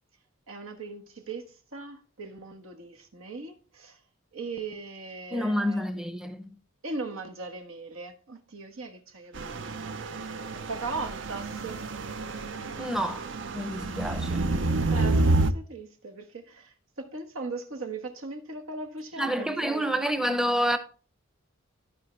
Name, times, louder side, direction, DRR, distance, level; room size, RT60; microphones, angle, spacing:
voice 1, 0.5-1.4 1.7-4.0 4.3-5.8 6.8-11.8 14.9-20.0, right 3 dB, 75° right, 1.3 m, -39 dB
voice 2, 5.3-6.4 12.8-13.3 13.5-14.5 19.2-20.8, equal, 5° right, 0.7 m, -28 dB
sound 1, 9.4-15.5, right 2 dB, 60° right, 0.6 m, -29 dB
13.5 x 4.9 x 3.2 m
head